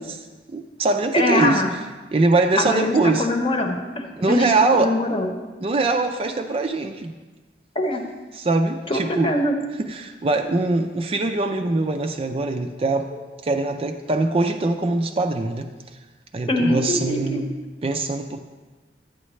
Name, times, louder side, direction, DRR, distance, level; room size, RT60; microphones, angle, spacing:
voice 1, 0.0-1.6 2.1-3.3 4.2-5.0 5.6-7.1 8.3-9.3 9.8-13.1 13.4-15.7 16.3-17.4 17.8-18.4, right 3 dB, 35° right, 6 dB, 0.4 m, -22 dB
voice 2, 1.1-1.7 2.6-5.3 7.7-8.0 8.9-9.6 16.5-17.4, left 1 dB, 30° left, 3 dB, 0.9 m, -23 dB
11.0 x 9.1 x 3.2 m, 1.3 s
head